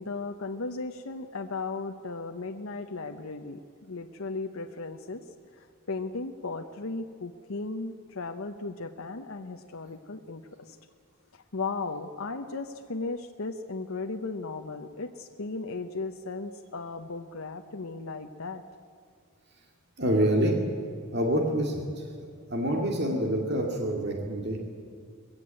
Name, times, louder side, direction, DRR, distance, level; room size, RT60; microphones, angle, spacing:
voice 1, 0.0-5.2 5.6-10.4 10.7-10.8 11.3-18.6, left 3 dB, 80° left, 4 dB, 0.9 m, -36 dB
voice 2, 20.0-20.6 21.1-21.9 22.5-24.6, right 1 dB, 50° right, 1 dB, 2.3 m, -26 dB
20.5 x 16.0 x 9.0 m, 2.2 s
head